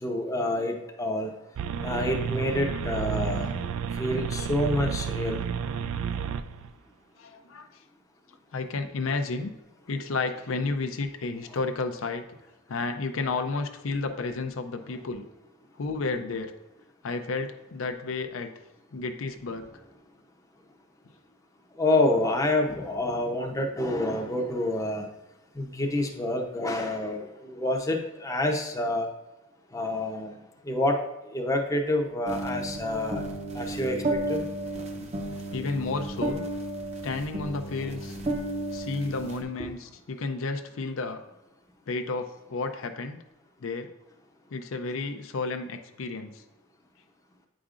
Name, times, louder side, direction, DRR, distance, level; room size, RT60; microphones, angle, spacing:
voice 1, 0.0-1.3 1.8-3.6 4.0-5.4 21.8-25.1 25.6-29.1 29.7-30.3 30.7-31.0 31.3-33.2 33.5-34.4, left 1 dB, 15° left, 2 dB, 0.6 m, -27 dB
sound 1, 1.6-6.7, right 7 dB, 80° right, 0.3 m, -31 dB
voice 2, 7.2-7.7 8.5-9.5 9.9-12.2 12.7-15.2 15.8-16.5 17.0-18.5 18.9-19.6 35.2-36.4 37.0-38.2 38.7-41.2 41.9-43.2 43.6-43.9 44.5-46.4, left 3 dB, 70° left, 6 dB, 0.5 m, -32 dB
sound 2, 32.3-39.4, right 1 dB, 30° right, 0.7 m, -33 dB
8.2 x 5.0 x 2.4 m, 0.99 s
head